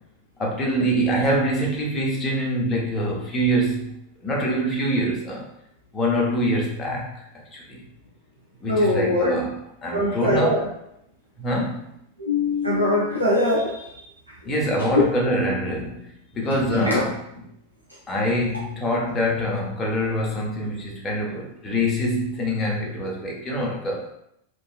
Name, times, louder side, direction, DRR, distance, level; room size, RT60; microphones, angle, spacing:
voice 1, 0.4-3.9 4.2-5.4 5.9-7.2 7.5-7.8 8.6-9.5 9.8-10.5 11.4-11.9 14.4-16.0 16.3-17.1 18.1-24.1, equal, 25° left, -2 dB, 0.7 m, -24 dB
voice 2, 8.7-9.4 9.9-10.6 12.2-14.0 15.0-15.1 16.7-17.0, left 1 dB, 90° right, -6 dB, 0.4 m, -22 dB
2.6 x 2.3 x 2.4 m, 0.77 s
figure-of-eight pair, 90°, 0 cm